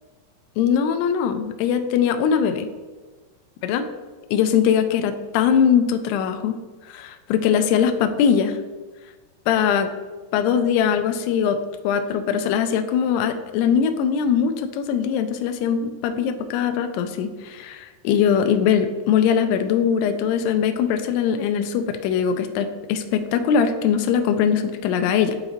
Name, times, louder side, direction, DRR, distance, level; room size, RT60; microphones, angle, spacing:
voice 1, 0.6-2.7 3.6-3.9 4.3-6.6 6.9-8.6 9.5-9.9 10.3-25.3, left 7 dB, 85° left, 8 dB, 2.4 m, -21 dB
10.5 x 3.9 x 3.0 m, 1.3 s
omnidirectional pair, 5.1 m